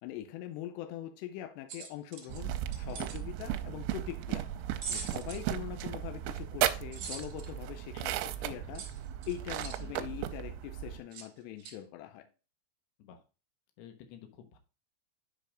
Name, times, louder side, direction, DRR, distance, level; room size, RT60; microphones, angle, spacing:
voice 1, 0.0-4.5 4.9-8.9 9.3-12.3, left 12 dB, 90° left, 7 dB, 2.4 m, -42 dB
sound 1, 1.7-3.2 4.8-5.5 6.9-7.5 8.7-9.8 11.1-11.3 11.6-11.8, right 6 dB, 60° right, 2.0 m, -42 dB
sound 2, 2.3-11.0, right 12 dB, 85° right, 3.2 m, -36 dB
voice 2, 4.4-4.8 7.9-8.0 9.8-10.1 13.0-13.2 13.8-14.6, left 9 dB, 70° left, 6 dB, 2.8 m, -53 dB
10.5 x 5.4 x 2.5 m, 0.32 s
omnidirectional pair, 5.9 m